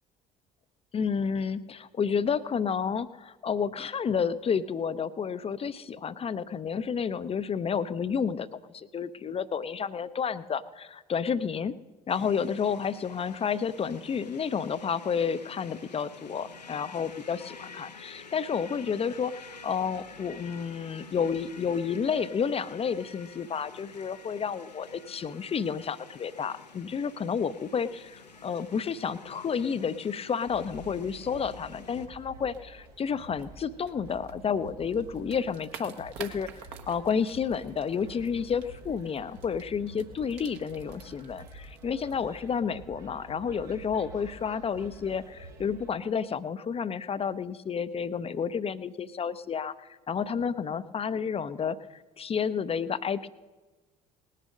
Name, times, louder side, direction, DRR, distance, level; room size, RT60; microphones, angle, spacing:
voice 1, 0.9-11.8 12.1-53.3, left 6 dB, 30° left, 14 dB, 0.6 m, -31 dB
sound 1, 12.1-32.1, left 4 dB, 85° left, 0.7 m, -49 dB
sound 2, 30.5-45.9, right 2 dB, 75° right, 1.9 m, -49 dB
sound 3, 32.5-42.7, right 7 dB, 55° right, 1.2 m, -51 dB
19.0 x 6.6 x 6.3 m, 1.2 s
figure-of-eight pair, 50°, 21 cm